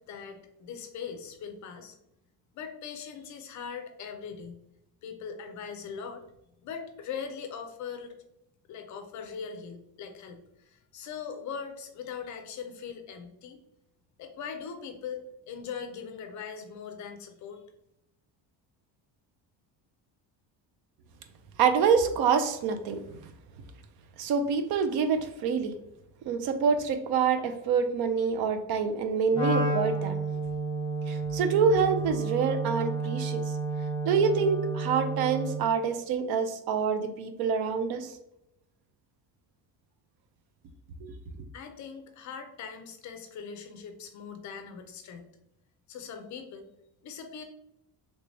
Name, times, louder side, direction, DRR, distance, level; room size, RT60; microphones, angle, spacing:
voice 1, 0.0-2.0 2.5-4.6 5.0-6.2 6.6-8.2 8.7-13.6 14.2-17.6 41.5-45.3 45.9-46.7 47.0-47.4, left 6 dB, 40° left, 7 dB, 0.5 m, -40 dB
voice 2, 21.6-23.2 24.2-25.7 26.3-30.2 31.1-33.4 34.0-38.1 41.0-41.1, right 6 dB, 55° right, 8 dB, 0.5 m, -26 dB
Wind instrument woodwind instrument, 29.3-35.7, right 3 dB, 10° left, 0.9 m, -31 dB
3.2 x 3.2 x 2.6 m, 0.84 s
cardioid pair, 175°, 45 cm